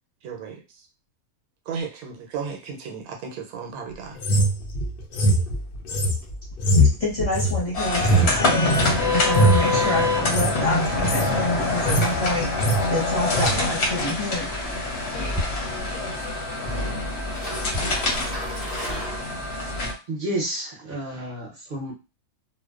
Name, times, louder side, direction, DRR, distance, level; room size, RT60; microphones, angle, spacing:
voice 1, 0.2-0.8 1.7-4.2, right 6 dB, 85° right, 2 dB, 1.1 m, -34 dB
sound 1, 4.2-8.9 9.3-9.7 10.2-10.5 10.8-11.3 11.6-12.2 12.4-12.8 13.3-13.5, right 1 dB, 85° left, 0.4 m, -21 dB
voice 2, 6.6-8.8 9.1-14.5, left 1 dB, 30° left, -8 dB, 0.7 m, -28 dB
sound 2, 7.7-19.9, left 2 dB, 60° left, 0.8 m, -25 dB
sound 3, 14.0-19.8, equal, 5° right, 1.1 m, -36 dB
voice 3, 20.1-21.9, right 1 dB, 45° right, -2 dB, 0.7 m, -30 dB
2.5 x 2.1 x 2.3 m, 0.29 s
omnidirectional pair, 1.5 m